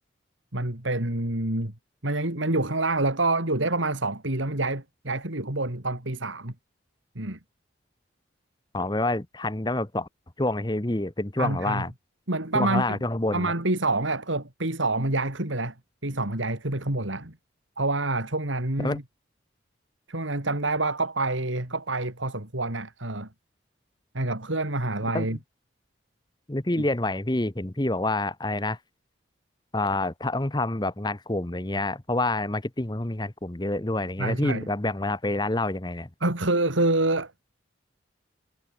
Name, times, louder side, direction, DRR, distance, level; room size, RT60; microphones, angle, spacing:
voice 1, 0.5-1.7 2.0-6.5 7.1-7.4 11.4-11.8 12.3-13.0 13.3-15.7 16.0-17.3 17.8-19.0 20.1-23.3 24.1-25.4 34.2-34.7 36.2-37.3, right 2 dB, 85° right, 3.4 m, -27 dB
voice 2, 8.7-10.1 10.4-11.9 12.5-13.5 18.8-19.0 25.1-25.4 26.5-28.8 29.7-36.1, left 2 dB, 20° left, 1.1 m, -27 dB
head